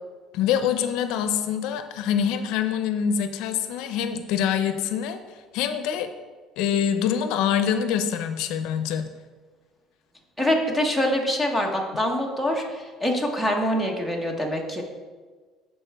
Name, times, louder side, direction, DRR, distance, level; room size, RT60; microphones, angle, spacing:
voice 1, 0.3-5.2 5.5-6.1 6.6-9.1, left 8 dB, 75° left, 9 dB, 0.5 m, -25 dB
voice 2, 10.4-14.8, equal, 5° right, 1 dB, 0.9 m, -25 dB
11.0 x 4.4 x 3.4 m, 1.4 s
cardioid pair, 165°, 0 cm